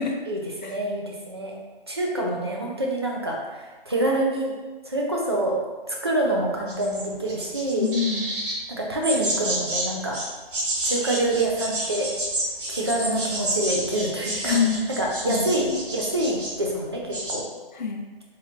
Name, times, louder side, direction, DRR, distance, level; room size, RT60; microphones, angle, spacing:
voice 1, 0.3-1.6 1.9-4.5 4.9-5.6 5.9-7.9 8.7-10.2 10.8-12.1 12.7-14.6 15.0-17.4, right 1 dB, 25° right, -2 dB, 0.4 m, -26 dB
sound 1, 6.7-8.6 9.0-9.9 10.1-16.6 16.9-17.4, right 1 dB, 60° right, 1.4 m, -29 dB
voice 2, 7.7-8.3 14.4-14.9 15.3-15.8 17.7-18.1, left 5 dB, 50° left, 2 dB, 0.6 m, -26 dB
4.5 x 3.1 x 2.5 m, 1.3 s
hypercardioid pair, 170°, 29 cm